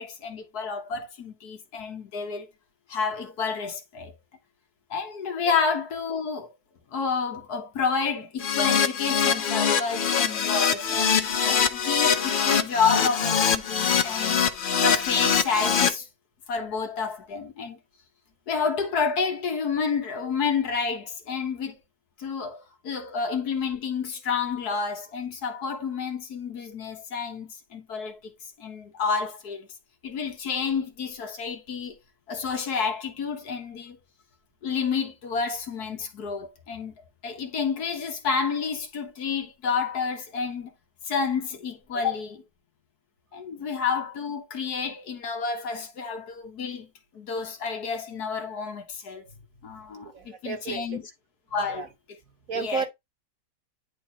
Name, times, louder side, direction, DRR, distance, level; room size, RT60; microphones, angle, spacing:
voice 1, 0.0-2.5 2.9-4.1 4.9-6.5 6.9-14.4 14.8-16.1 16.5-17.8 18.5-21.8 22.2-28.3 28.6-29.7 30.0-32.0 32.3-34.0 34.6-36.9 37.2-40.7 41.1-42.4 43.3-49.3 49.6-51.0 51.5-51.9 52.5-52.9, left 5 dB, 90° left, 1.8 m, -29 dB
Keyboard (musical), 8.4-15.9, left 7 dB, 50° left, 0.7 m, -23 dB
voice 2, 50.0-51.0 51.7-51.9 52.5-52.9, right 6 dB, 60° right, 1.8 m, -32 dB
10.0 x 4.1 x 2.9 m
omnidirectional pair, 1.6 m